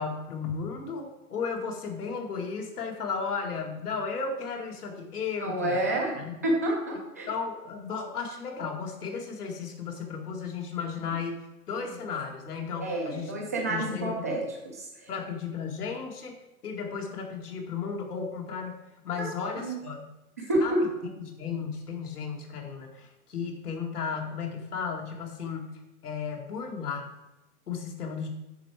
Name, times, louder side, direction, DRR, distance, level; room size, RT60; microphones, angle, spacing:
voice 1, 0.0-6.4 7.3-13.3 13.7-14.4 15.1-16.4 16.6-18.7 19.0-20.1 20.6-20.9 21.2-25.7 26.0-27.1 27.7-28.3, left 5 dB, 80° left, 1 dB, 2.1 m, -34 dB
voice 2, 5.4-6.1 6.4-7.3 12.8-14.4 19.2-19.3 19.6-19.7 20.4-20.8, right 1 dB, 10° right, -1 dB, 0.4 m, -28 dB
8.6 x 5.7 x 4.8 m, 0.99 s
hypercardioid pair, 155°, 45 cm